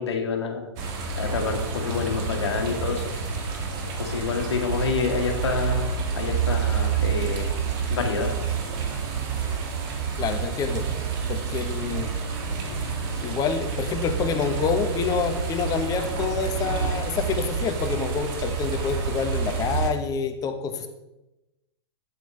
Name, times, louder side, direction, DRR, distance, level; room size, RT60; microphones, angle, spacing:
voice 1, 0.0-3.0 4.0-7.5 7.9-8.4, left 5 dB, 75° left, 4 dB, 1.7 m, -28 dB
sound 1, 0.8-19.9, right 6 dB, 50° right, 1.8 m, -28 dB
voice 2, 10.2-10.9 11.3-12.1 13.2-20.9, left 6 dB, 25° left, 7 dB, 1.0 m, -27 dB
sound 2, 11.9-17.7, left 2 dB, 90° right, 2.3 m, -41 dB
8.7 x 7.8 x 3.3 m, 0.98 s
hypercardioid pair, 120°, 14 cm